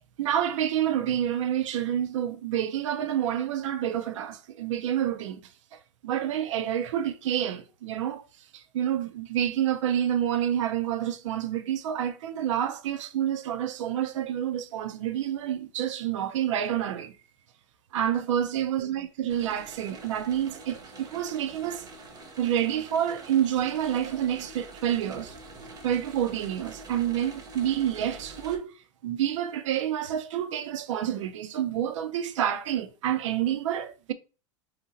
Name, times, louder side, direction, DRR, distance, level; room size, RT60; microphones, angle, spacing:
voice 1, 0.2-5.4 5.7-8.2 8.5-17.1 17.9-21.9 22.4-25.3 25.8-28.7 29.0-34.1, right 10 dB, 90° right, 0.4 m, -28 dB
sound 1, 19.3-28.6, right 2 dB, 25° right, 0.6 m, -46 dB
2.8 x 2.8 x 2.5 m
supercardioid pair, 130°, 15 cm